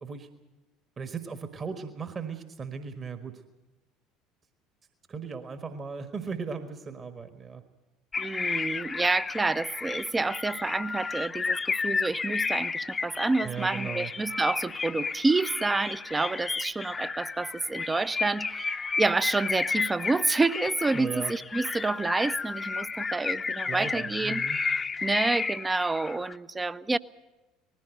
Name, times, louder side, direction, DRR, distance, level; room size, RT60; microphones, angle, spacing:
voice 1, 1.0-3.3 5.1-7.6 13.4-14.1 20.9-21.3 23.7-24.6, right 5 dB, 30° right, 1.5 m, -37 dB
sound 1, 8.1-26.3, left 4 dB, 25° left, 0.8 m, -32 dB
voice 2, 8.2-27.0, right 3 dB, 15° right, 0.6 m, -28 dB
19.5 x 15.5 x 9.2 m
figure-of-eight pair, 65°, 0 cm